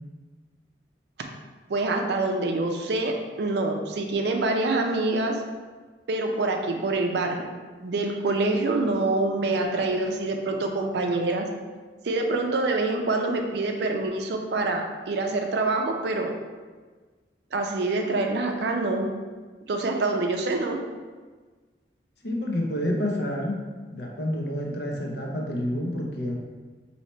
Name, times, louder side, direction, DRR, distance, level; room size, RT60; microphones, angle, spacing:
voice 1, 1.7-5.4 6.1-7.4 7.8-11.5 12.0-16.3 17.5-19.1 19.7-20.8, right 2 dB, 65° right, 3 dB, 0.4 m, -26 dB
voice 2, 22.2-23.6 23.9-26.4, left 1 dB, 65° left, 0 dB, 0.7 m, -28 dB
3.1 x 2.8 x 4.2 m, 1.4 s
head